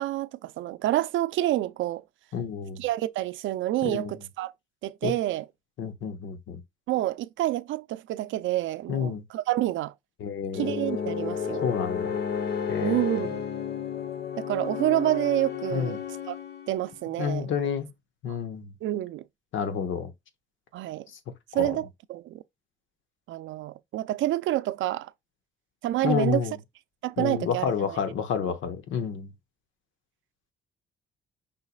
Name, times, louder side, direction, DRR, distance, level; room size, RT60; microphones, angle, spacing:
voice 1, 0.0-2.0 2.8-4.5 4.8-5.5 6.9-9.9 10.5-11.7 12.8-13.4 14.4-16.0 16.3-16.4 16.7-17.5 18.3-18.4 18.8-19.2 20.7-21.1 21.5-22.4 23.3-25.1 25.8-26.5 27.0-28.0, right 14 dB, 75° right, 0.4 m, -28 dB
voice 2, 2.3-2.8 3.8-4.1 5.0-5.1 5.8-6.6 8.9-9.2 10.2-10.6 11.6-12.2 12.7-13.1 15.7-15.9 17.2-17.9 18.2-18.7 19.5-20.1 21.6-21.7 26.0-26.5 27.2-29.3, left 7 dB, 75° left, 1.1 m, -29 dB
sound 1, 10.5-17.0, left 7 dB, 55° left, 0.8 m, -32 dB
5.6 x 4.0 x 2.2 m
cardioid pair, 90°, 20 cm